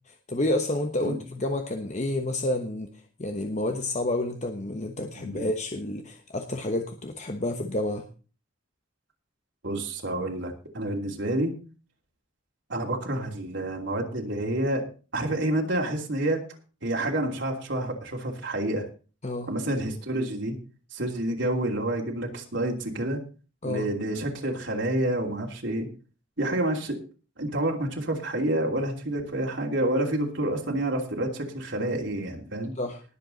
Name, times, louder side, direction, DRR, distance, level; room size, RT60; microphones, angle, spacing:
voice 1, 0.1-2.9 3.2-8.1 19.2-19.5 23.6-23.9 32.8-33.0, left 1 dB, 35° left, 5 dB, 1.1 m, -29 dB
voice 2, 5.2-5.5 9.6-11.5 12.7-14.9 15.1-16.4 16.8-18.9 19.5-20.5 20.9-23.2 23.6-25.9 26.4-27.0 27.4-32.7, right 1 dB, 60° right, 1 dB, 2.9 m, -28 dB
19.5 x 7.7 x 4.1 m, 0.35 s
head